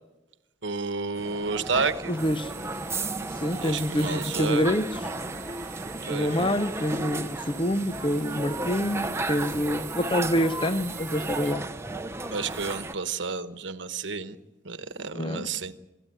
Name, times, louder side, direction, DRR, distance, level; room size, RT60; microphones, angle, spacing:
voice 1, 0.6-2.1 3.6-4.7 6.0-6.5 12.3-14.4 14.6-15.7, right 4 dB, 70° right, 1.1 m, -31 dB
sound 1, 1.2-12.9, right 2 dB, 15° right, 0.7 m, -34 dB
voice 2, 2.1-2.5 3.3-5.1 6.1-11.7 15.1-15.5, equal, 25° left, 0.7 m, -27 dB
sound 2, 2.2-11.5, right 10 dB, 45° right, 1.2 m, -44 dB
27.0 x 13.5 x 9.1 m
head